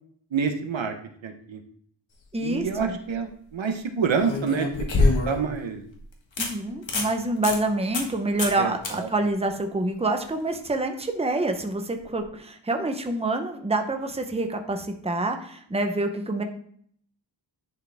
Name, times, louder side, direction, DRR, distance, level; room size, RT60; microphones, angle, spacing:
voice 1, 0.3-0.9 1.2-1.6 2.4-4.7 5.2-5.8 8.5-9.1, right 6 dB, 75° right, 6 dB, 1.0 m, -27 dB
voice 2, 2.3-2.9 6.4-16.4, right 2 dB, 15° right, 5 dB, 0.8 m, -27 dB
sound 1, 2.5-2.8 4.2-5.5 5.9-6.0 6.4-6.5 6.8-7.1 7.4-7.6 7.9-8.1 8.4-8.6 8.8-8.9 12.0-12.1, left 2 dB, 75° left, 1.7 m, -25 dB
10.5 x 4.7 x 3.5 m, 0.62 s
wide cardioid pair, 100°, 46 cm